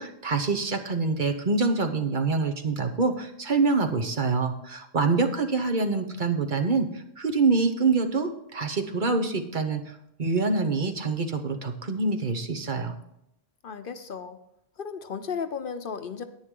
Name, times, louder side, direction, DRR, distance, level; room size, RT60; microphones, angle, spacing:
voice 1, 0.0-12.9, right 4 dB, 50° right, 6 dB, 1.2 m, -26 dB
voice 2, 13.6-14.4 14.8-16.2, left 6 dB, 60° left, 9 dB, 0.9 m, -34 dB
10.5 x 9.8 x 3.8 m, 0.80 s
omnidirectional pair, 1.1 m